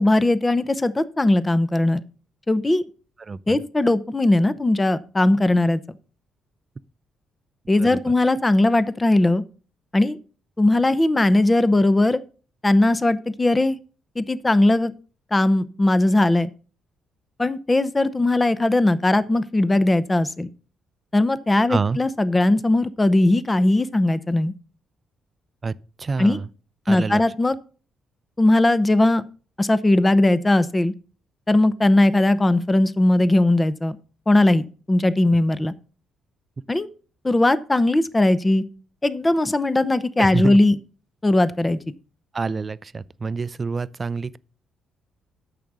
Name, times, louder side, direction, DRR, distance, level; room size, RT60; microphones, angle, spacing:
voice 1, 0.0-2.0 2.5-2.9 3.5-5.8 7.7-9.4 9.9-10.2 10.6-12.2 12.6-13.8 14.2-14.9 15.3-16.5 17.4-20.5 21.1-24.5 26.2-26.4 26.9-27.6 28.4-29.2 29.6-30.9 31.5-34.0 34.3-35.7 36.7-36.9 37.2-38.6 39.0-40.7 41.2-41.8, left 2 dB, 20° left, 0.7 m, -19 dB
voice 2, 7.8-8.1 21.7-22.0 25.6-26.5 26.9-27.2 40.2-40.6 42.3-44.4, right 4 dB, 30° right, 0.5 m, -27 dB
9.0 x 6.6 x 6.1 m
cardioid pair, 90°, 0 cm